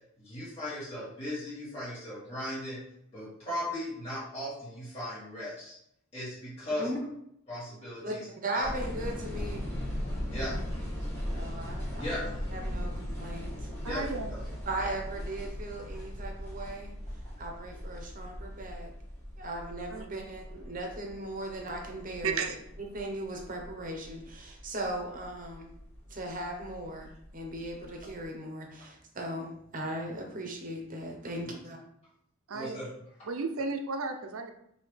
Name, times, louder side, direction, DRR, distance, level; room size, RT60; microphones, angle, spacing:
voice 1, 0.2-2.8 3.1-5.8 6.1-6.9 7.5-8.3 8.5-8.7 10.3-10.5 12.0-12.2 13.8-14.4 31.4-31.5 32.5-32.9, left 1 dB, 30° left, -10 dB, 1.7 m, -37 dB
voice 2, 8.4-9.7 11.3-13.7 14.7-16.9 17.4-18.9 19.4-22.4 22.8-25.7 26.1-27.1 27.3-31.8, right 1 dB, 40° right, 2 dB, 0.8 m, -38 dB
sound 1, 8.6-28.2, equal, 10° left, 1.7 m, -39 dB
voice 3, 13.8-14.3 19.9-20.0 22.2-22.6 32.5-32.8 33.3-34.5, right 4 dB, 85° right, 5 dB, 0.6 m, -33 dB
5.1 x 2.8 x 3.2 m, 0.74 s
head